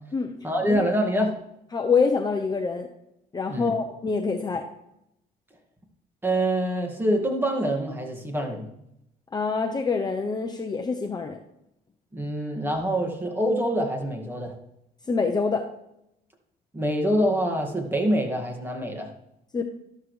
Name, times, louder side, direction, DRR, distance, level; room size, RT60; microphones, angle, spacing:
voice 1, 0.4-1.4 3.5-3.7 6.2-8.7 12.1-14.5 16.7-19.1, equal, 10° right, 2 dB, 2.0 m, -25 dB
voice 2, 1.7-2.9 3.3-4.6 9.3-11.4 15.1-15.7 19.5-19.6, left 4 dB, 25° left, 3 dB, 0.7 m, -25 dB
12.5 x 12.0 x 3.2 m, 0.83 s
cardioid pair, 120°, 18 cm